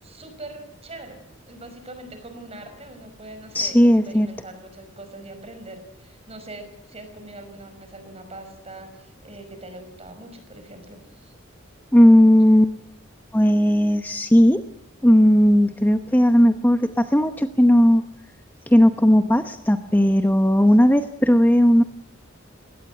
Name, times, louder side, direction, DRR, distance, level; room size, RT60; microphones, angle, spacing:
voice 1, 0.0-1.2 1.5-11.3, right 2 dB, 30° right, 8 dB, 5.5 m, -42 dB
voice 2, 3.5-4.3 11.9-12.7 13.3-14.6 15.0-18.0 18.7-21.8, equal, 10° left, 8 dB, 0.9 m, -16 dB
21.0 x 17.5 x 9.5 m, 0.83 s
head